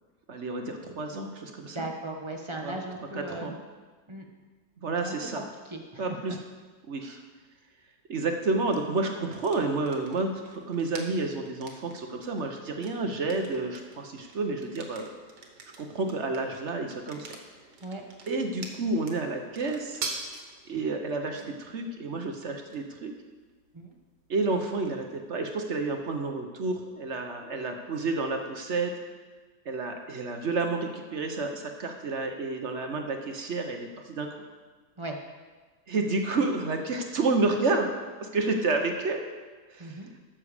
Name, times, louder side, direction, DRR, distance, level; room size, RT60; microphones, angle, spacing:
voice 1, 0.3-1.8 2.6-2.7 3.1-3.5 4.8-5.4 6.0-6.4 6.9-7.2 8.1-15.1 15.8-17.3 18.3-20.0 20.7-23.1 24.3-28.9 29.7-34.3 35.9-37.9 38.2-39.2 39.7-40.0, right 3 dB, 50° right, 4 dB, 1.1 m, -30 dB
voice 2, 1.7-3.6 4.1-4.2 5.0-6.4 7.0-7.2 17.8-18.0 23.7-23.9 35.0-35.2 39.8-40.1, right 2 dB, 25° right, 2 dB, 0.8 m, -38 dB
sound 1, 8.7-26.4, right 4 dB, 75° right, 1.8 m, -46 dB
12.0 x 7.4 x 5.0 m, 1.3 s
omnidirectional pair, 1.8 m